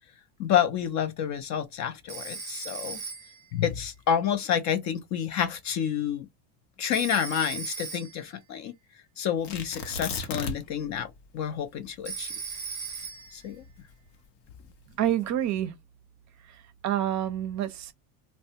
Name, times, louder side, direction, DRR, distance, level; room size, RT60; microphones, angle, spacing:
voice 1, 0.4-3.0 3.5-6.3 6.8-8.7 9.2-12.3 13.3-13.6, left 9 dB, 45° left, 0.4 m, -29 dB
Telephone, 2.1-3.5 6.9-8.3 12.1-13.5, right 6 dB, 15° right, 0.9 m, -38 dB
Tearing, 9.4-10.8 11.1-11.2 11.8-14.1 14.8-15.3, left 4 dB, 85° left, 0.8 m, -36 dB
voice 2, 15.0-15.7 16.8-17.9, right 11 dB, 40° right, 0.5 m, -27 dB
3.2 x 2.1 x 2.7 m
cardioid pair, 130°, 43 cm